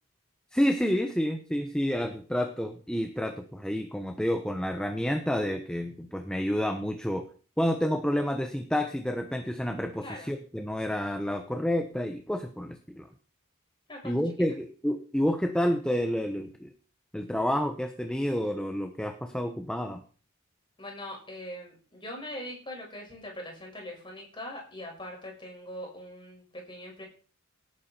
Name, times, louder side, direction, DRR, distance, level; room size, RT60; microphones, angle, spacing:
voice 1, 0.5-7.2 7.6-13.1 14.0-16.7 17.1-20.0, equal, 5° left, 6 dB, 1.1 m, -29 dB
voice 2, 10.0-10.3 13.9-14.2 20.8-27.1, left 1 dB, 25° left, 0 dB, 6.0 m, -41 dB
18.0 x 9.5 x 4.5 m, 0.40 s
head